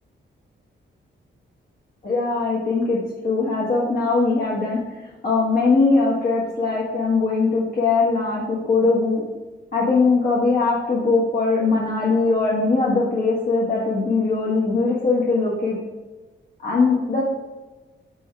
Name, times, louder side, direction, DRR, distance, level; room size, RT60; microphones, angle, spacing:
voice 1, 2.0-3.0 3.2-9.2 9.7-15.8 16.6-17.2, left 3 dB, 50° left, -6 dB, 1.5 m, -20 dB
5.9 x 5.3 x 4.8 m, 1.2 s
wide cardioid pair, 120°, 20 cm